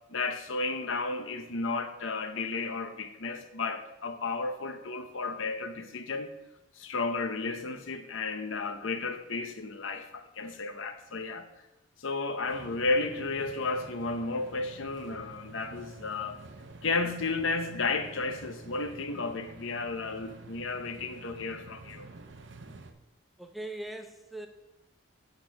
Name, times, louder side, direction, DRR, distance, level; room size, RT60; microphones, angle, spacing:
voice 1, 0.1-6.3 6.8-11.5 12.0-16.4 16.8-22.1, left 3 dB, 70° left, 0.8 m, -33 dB
sound 1, 12.5-22.9, right 3 dB, 60° right, 0.7 m, -49 dB
voice 2, 23.4-24.5, right 1 dB, ahead, 0.4 m, -40 dB
6.7 x 6.2 x 5.2 m
head